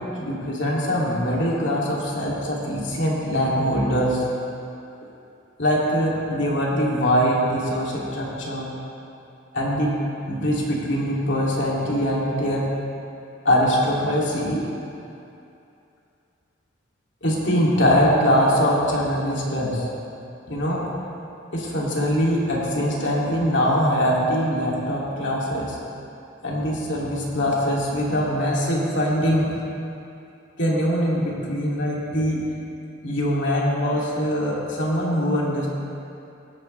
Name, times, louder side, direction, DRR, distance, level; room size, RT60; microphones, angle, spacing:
voice 1, 0.0-4.2 5.6-8.7 9.5-10.0 10.3-12.7 13.4-14.6 17.2-19.9 20.5-20.8 21.5-25.8 26.4-29.5 30.6-32.4 33.0-35.7, equal, 60° left, -4 dB, 2.8 m, -22 dB
17.0 x 13.5 x 3.3 m, 2.7 s
head